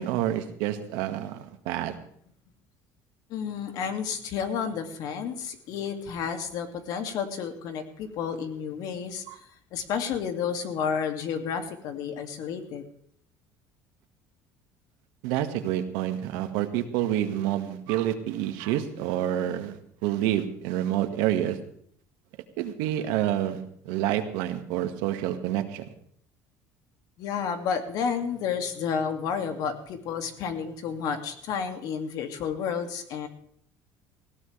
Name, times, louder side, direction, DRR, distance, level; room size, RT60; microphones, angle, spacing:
voice 1, 0.0-2.0 9.3-9.4 15.2-21.6 22.6-23.6 23.9-25.8, right 12 dB, 85° right, 7 dB, 1.8 m, -28 dB
voice 2, 3.3-12.8 27.2-33.3, left 7 dB, 65° left, 6 dB, 2.4 m, -31 dB
18.5 x 17.0 x 3.4 m, 0.65 s
cardioid pair, 125°, 7 cm